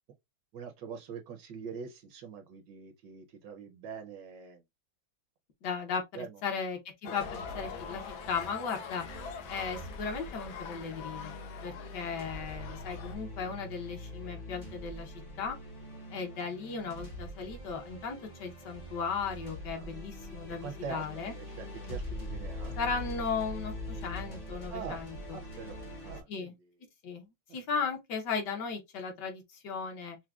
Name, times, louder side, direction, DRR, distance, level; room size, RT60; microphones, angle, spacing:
voice 1, 0.5-4.6 6.1-6.4 7.1-7.2 19.7-19.9 20.6-22.8 24.7-25.1 25.3-26.6, right 6 dB, 70° right, 1.2 m, -44 dB
voice 2, 5.6-6.0 6.4-9.0 9.5-11.4 11.6-15.6 16.1-21.3 22.8-25.1 26.3-26.5 27.0-30.2, left 5 dB, 65° left, 1.4 m, -36 dB
sound 1, 7.0-13.2, left 7 dB, 85° left, 1.5 m, -44 dB
sound 2, 7.2-26.2, equal, 40° left, 0.6 m, -43 dB
5.8 x 2.1 x 2.3 m
omnidirectional pair, 2.1 m